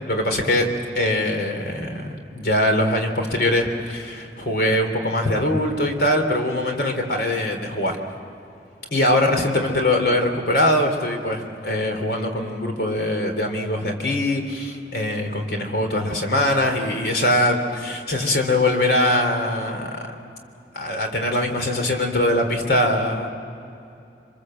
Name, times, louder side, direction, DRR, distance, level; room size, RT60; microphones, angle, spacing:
voice 1, 0.1-0.7 0.9-8.0 8.9-19.9 20.7-23.3, left 1 dB, 60° left, 4 dB, 3.4 m, -22 dB
27.5 x 25.5 x 7.8 m, 2.7 s
head